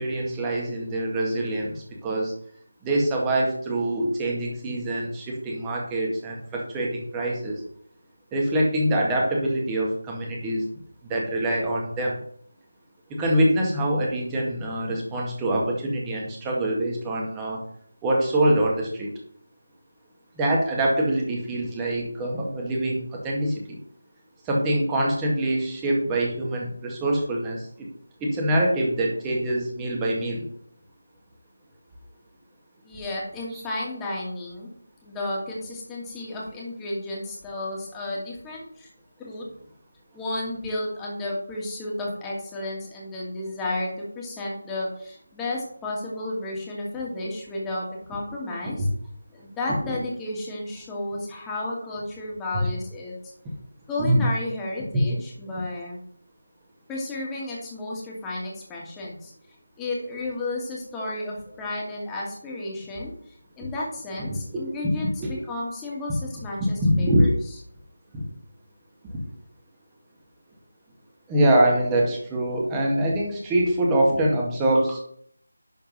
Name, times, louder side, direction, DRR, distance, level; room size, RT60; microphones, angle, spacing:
voice 1, 0.0-2.3 2.8-7.6 8.3-10.7 11.0-12.2 13.1-17.6 18.0-19.1 20.4-23.8 24.4-27.9 28.2-30.5 33.5-33.6 48.8-48.9 49.7-50.0 52.5-52.7 54.0-54.2 54.9-55.0 64.5-65.3 66.6-67.3 68.1-68.2 71.3-75.0, right 1 dB, 10° right, -2 dB, 2.0 m, -24 dB
voice 2, 32.8-34.7 35.0-38.9 39.2-39.5 40.1-48.9 49.3-53.1 53.9-56.0 56.9-59.3 59.8-67.3, left 2 dB, 10° left, -4 dB, 2.2 m, -32 dB
11.0 x 4.5 x 5.5 m, 0.64 s
figure-of-eight pair, 165°, 0 cm